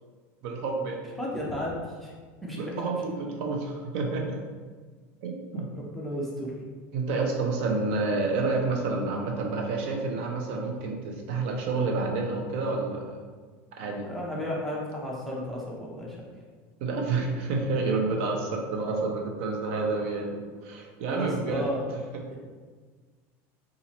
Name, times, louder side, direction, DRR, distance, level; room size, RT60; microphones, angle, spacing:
voice 1, 0.4-1.0 2.6-4.4 5.2-5.7 6.9-13.2 13.8-14.1 16.8-21.6, right 3 dB, 60° right, 1 dB, 0.5 m, -29 dB
voice 2, 1.2-2.1 2.4-2.7 5.5-6.6 14.1-16.2 21.1-21.8, equal, ahead, -5 dB, 0.5 m, -33 dB
2.9 x 2.4 x 4.0 m, 1.5 s
supercardioid pair, 170°, 7 cm